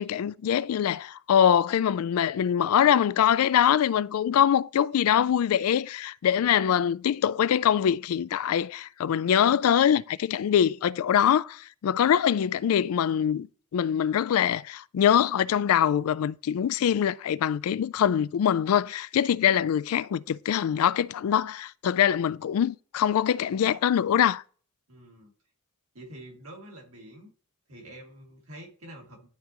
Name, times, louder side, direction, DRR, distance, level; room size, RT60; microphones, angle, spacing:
voice 1, 0.0-13.5 13.7-24.4, left 9 dB, 75° left, 0.3 m, -23 dB
voice 2, 24.9-25.3 25.9-27.3 27.7-29.3, right 1 dB, 75° right, 2.2 m, -46 dB
11.5 x 3.9 x 2.9 m
head